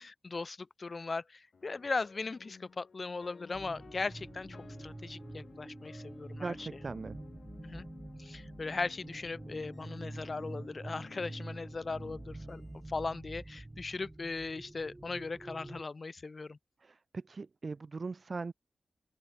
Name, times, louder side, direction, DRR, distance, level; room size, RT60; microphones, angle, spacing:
voice 1, 0.2-6.7 7.6-7.9 8.2-12.6 12.9-16.6, left 3 dB, 45° left, 0.4 m, -38 dB
sound 1, 1.5-13.8, left 5 dB, 65° left, 1.2 m, -56 dB
sound 2, 3.5-15.8, right 2 dB, 20° right, 2.0 m, -47 dB
voice 2, 6.4-7.2 16.8-18.5, right 4 dB, 45° right, 0.5 m, -40 dB
open air
wide cardioid pair, 85°, 0 cm